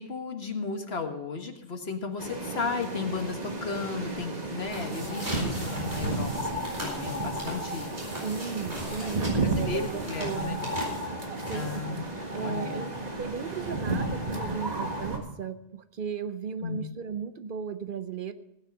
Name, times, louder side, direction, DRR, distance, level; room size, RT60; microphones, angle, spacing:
voice 1, 0.0-8.0 9.0-9.1 9.4-10.6 11.5-12.0 12.3-12.8 16.6-16.8, left 4 dB, 65° left, 6 dB, 1.7 m, -34 dB
sound 1, 2.2-15.2, right 2 dB, 40° right, 1.8 m, -33 dB
sound 2, 4.7-12.1, equal, 85° right, 4.8 m, -40 dB
voice 2, 8.2-10.6 11.5-11.8 12.3-18.3, right 6 dB, 55° right, 11 dB, 0.8 m, -36 dB
16.5 x 9.2 x 5.4 m, 0.82 s
omnidirectional pair, 1.1 m